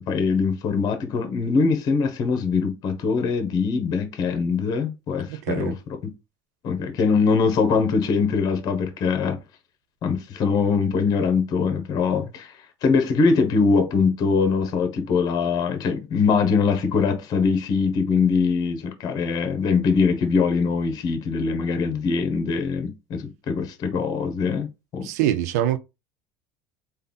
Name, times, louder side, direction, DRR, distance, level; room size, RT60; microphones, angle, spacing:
voice 1, 0.0-5.7 6.6-9.4 10.0-25.1, left 5 dB, 50° left, 1.1 m, -22 dB
voice 2, 5.3-5.7 25.0-25.8, right 12 dB, 90° right, 0.5 m, -24 dB
3.4 x 2.5 x 4.0 m
supercardioid pair, 115°, 9 cm